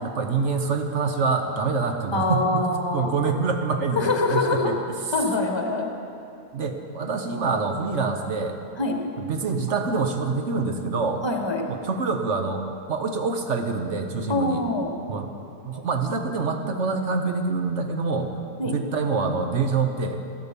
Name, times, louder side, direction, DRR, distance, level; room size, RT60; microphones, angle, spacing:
voice 1, 0.0-4.8 6.5-8.6 9.2-11.2 11.7-12.6 12.9-14.6 15.1-15.3 15.7-18.3 18.6-20.2, right 4 dB, 55° right, 5 dB, 1.1 m, -26 dB
voice 2, 2.1-3.1 3.9-4.7 5.1-5.9 8.8-9.0 11.2-11.6 14.3-14.9 18.6-18.7, left 2 dB, 20° left, 2 dB, 1.3 m, -24 dB
14.0 x 12.5 x 5.2 m, 2.5 s
omnidirectional pair, 1.6 m